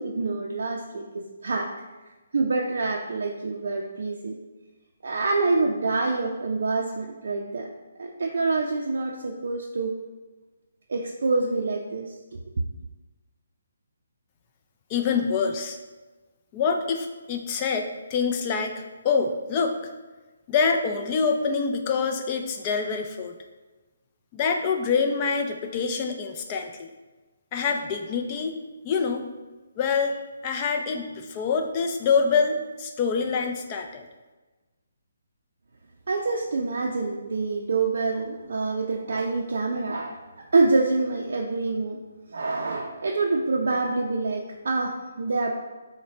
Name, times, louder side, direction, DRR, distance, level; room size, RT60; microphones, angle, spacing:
voice 1, 0.0-1.7 2.3-4.4 5.0-7.7 8.0-10.0 10.9-12.4 36.1-42.0 42.3-45.6, right 3 dB, 65° right, 1 dB, 0.4 m, -26 dB
voice 2, 14.9-15.8 16.5-19.9 20.5-23.3 24.3-26.9 27.5-28.6 28.8-29.3 29.8-34.1, left 5 dB, 25° left, 4 dB, 0.4 m, -26 dB
4.7 x 2.1 x 4.0 m, 1.2 s
hypercardioid pair, 160°, 0 cm